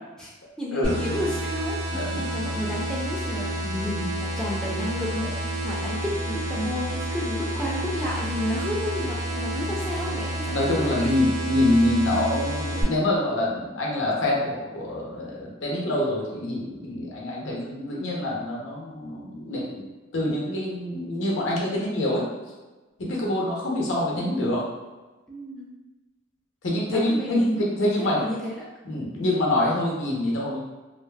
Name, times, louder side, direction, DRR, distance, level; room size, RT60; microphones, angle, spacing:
voice 1, 0.6-11.1 25.3-25.7 26.9-28.6, left 1 dB, 5° left, -6 dB, 0.4 m, -31 dB
sound 1, 0.8-12.8, right 1 dB, 70° right, 1.2 m, -30 dB
voice 2, 1.9-2.3 5.2-5.3 9.0-9.1 10.5-22.3 23.0-24.6 26.6-28.3 28.8-30.7, left 1 dB, 75° left, -3 dB, 0.7 m, -26 dB
2.6 x 2.3 x 2.2 m, 1.2 s
head